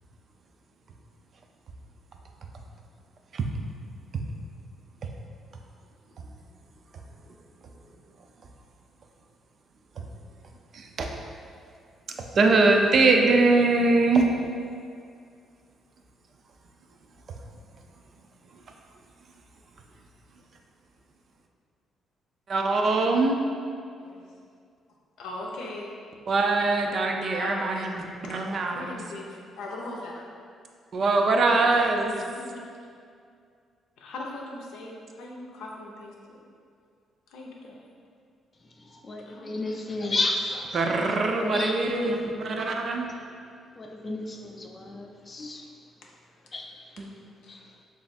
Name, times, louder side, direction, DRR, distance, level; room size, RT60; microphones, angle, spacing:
voice 1, 10.7-11.1 12.1-14.3 22.5-23.4 26.3-29.0 30.9-32.1 40.7-43.1 47.0-47.1, right 3 dB, 55° right, 3 dB, 0.4 m, -23 dB
voice 2, 25.2-25.9 27.2-27.9 28.3-30.2 32.0-32.6 34.0-36.1 37.3-37.8 39.3-39.8 41.3-42.5 47.4-47.5, left 2 dB, 85° left, -2 dB, 0.5 m, -38 dB
voice 3, 38.8-40.8 41.1-41.2 41.5-41.8 43.8-45.6 46.5-46.7 47.5-47.6, left 2 dB, 35° left, 2 dB, 0.4 m, -32 dB
3.3 x 2.4 x 4.1 m, 2.3 s
cardioid pair, 90°, 0 cm